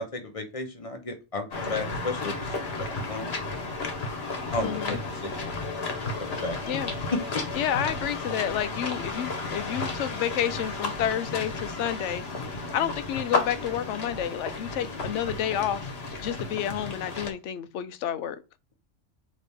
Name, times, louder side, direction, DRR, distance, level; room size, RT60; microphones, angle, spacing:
voice 1, 0.0-3.4 4.5-5.5 6.2-6.6 7.1-7.4 14.8-15.0, left 2 dB, 30° left, 0.8 m, -34 dB
sound 1, 1.5-17.3, left 3 dB, 60° left, 1.3 m, -33 dB
voice 2, 4.6-5.0 6.7-6.9 7.6-15.9 16.2-18.4, left 10 dB, 80° left, 0.9 m, -30 dB
4.1 x 3.1 x 3.4 m
omnidirectional pair, 1.2 m